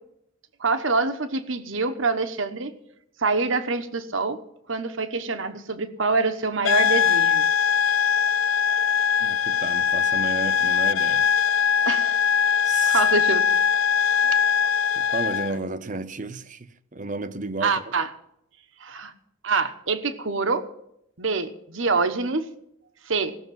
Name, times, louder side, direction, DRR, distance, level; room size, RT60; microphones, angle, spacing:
voice 1, 0.6-2.7 3.2-4.4 4.7-7.5 11.9-12.2 12.9-13.5 17.6-18.1 18.8-19.1 19.4-20.7 21.2-22.5 23.1-23.3, right 4 dB, 70° right, 1.0 m, -25 dB
sound 1, 6.6-15.6, left 7 dB, 75° left, 0.4 m, -21 dB
voice 2, 9.2-11.3 12.6-13.0 15.0-17.8, right 3 dB, 40° right, 0.7 m, -33 dB
17.5 x 6.6 x 9.2 m
head